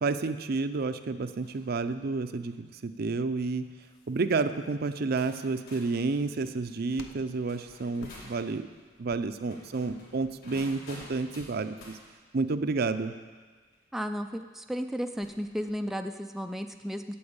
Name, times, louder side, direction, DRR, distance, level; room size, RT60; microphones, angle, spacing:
voice 1, 0.0-3.7 4.1-8.7 9.0-12.0 12.3-13.1, right 3 dB, 55° right, 10 dB, 0.5 m, -30 dB
sound 1, 1.4-1.7 2.2-2.6 3.4-3.7 4.5-4.6 5.1-8.4 9.4-12.0 13.7-13.8 15.1-15.8, left 1 dB, 55° left, 3.4 m, -51 dB
sound 2, 3.8-12.1, left 3 dB, 80° left, 0.7 m, -54 dB
voice 2, 13.9-17.0, equal, ahead, 5 dB, 0.3 m, -34 dB
8.6 x 7.8 x 8.1 m, 1.5 s
head